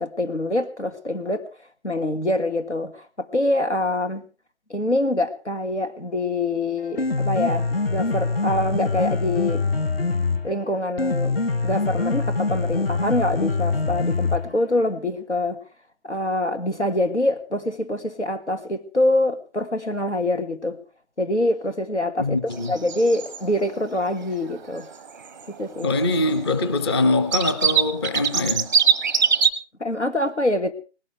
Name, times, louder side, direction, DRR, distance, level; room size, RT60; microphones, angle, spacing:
voice 1, 0.0-1.5 1.8-4.2 4.7-9.7 10.4-11.4 11.6-15.6 16.0-20.8 21.2-22.4 22.7-24.9 25.5-25.9 29.8-30.7, left 1 dB, 90° left, 1.9 m, -25 dB
Piano, 6.8-14.8, left 3 dB, 60° left, 1.2 m, -24 dB
voice 2, 22.2-22.8 25.8-28.7, left 2 dB, 25° left, 0.8 m, -23 dB
sound 1, 22.5-23.4 23.7-23.8 23.9-24.2 24.5-24.6 24.8-25.5 25.8-26.6 27.0-27.1 27.3-29.5, right 6 dB, 15° right, 0.7 m, -22 dB
19.0 x 17.5 x 3.3 m
figure-of-eight pair, 145°, 34 cm